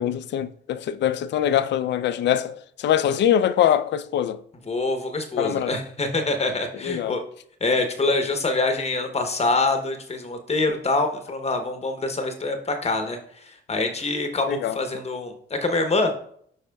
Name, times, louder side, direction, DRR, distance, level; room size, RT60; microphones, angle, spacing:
voice 1, 0.0-4.4 5.4-5.7 6.8-7.2 14.5-14.8, left 10 dB, 65° left, 0.4 m, -23 dB
voice 2, 4.7-7.2 7.6-16.1, left 2 dB, 30° left, 0.9 m, -25 dB
12.0 x 4.2 x 2.3 m
cardioid pair, 90°, 20 cm